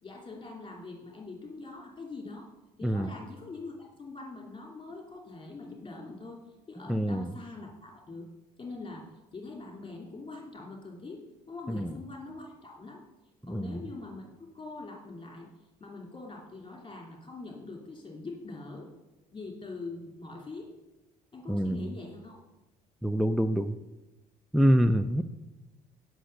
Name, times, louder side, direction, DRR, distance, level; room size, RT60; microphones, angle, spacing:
voice 1, 0.0-2.5 2.8-6.4 6.7-8.3 8.6-9.0 9.3-11.2 11.5-13.0 13.5-15.5 15.8-18.9 19.3-20.7 21.3-22.4, left 3 dB, 25° left, 0 dB, 2.7 m, -43 dB
voice 2, 6.9-7.2 11.7-11.9 13.5-13.8 21.5-21.9 23.0-23.7 24.5-25.2, equal, ahead, 11 dB, 0.5 m, -26 dB
10.0 x 6.1 x 6.5 m, 1.0 s
hypercardioid pair, 60°, 20 cm